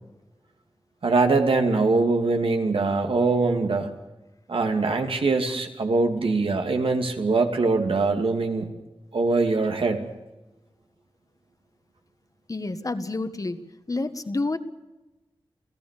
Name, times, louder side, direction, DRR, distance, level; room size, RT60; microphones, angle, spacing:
voice 1, 1.0-3.9 4.5-8.7 9.1-10.0, right 3 dB, 80° right, 5 dB, 2.5 m, -23 dB
voice 2, 12.5-14.6, left 2 dB, 40° left, 9 dB, 1.5 m, -29 dB
28.5 x 16.5 x 6.7 m, 1.1 s
wide cardioid pair, 80°, 9 cm